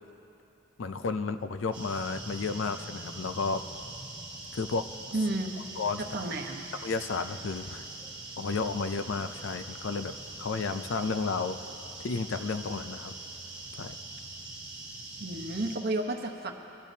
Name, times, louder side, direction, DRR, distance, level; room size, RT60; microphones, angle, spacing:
voice 1, 0.8-3.6 4.5-4.9 5.8-6.0 6.8-7.8 8.4-11.6 12.0-13.1 13.7-14.0, left 4 dB, 70° left, 10 dB, 0.5 m, -32 dB
sound 1, 1.7-15.8, right 2 dB, 10° right, 3.0 m, -43 dB
voice 2, 5.1-5.6 6.0-6.7 15.2-16.5, right 2 dB, 50° right, 2 dB, 1.0 m, -32 dB
21.5 x 12.0 x 2.8 m, 2.8 s
head